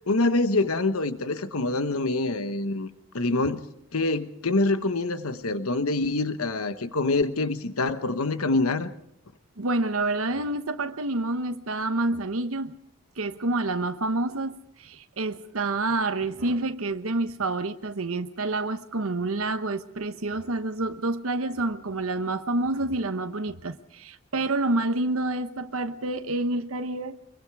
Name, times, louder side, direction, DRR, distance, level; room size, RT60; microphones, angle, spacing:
voice 1, 0.1-2.9 3.1-3.6 3.9-8.9, left 2 dB, 85° left, 11 dB, 1.1 m, -25 dB
voice 2, 9.6-12.7 13.2-27.2, right 2 dB, 75° right, 8 dB, 1.0 m, -28 dB
24.5 x 23.0 x 4.8 m, 0.73 s
head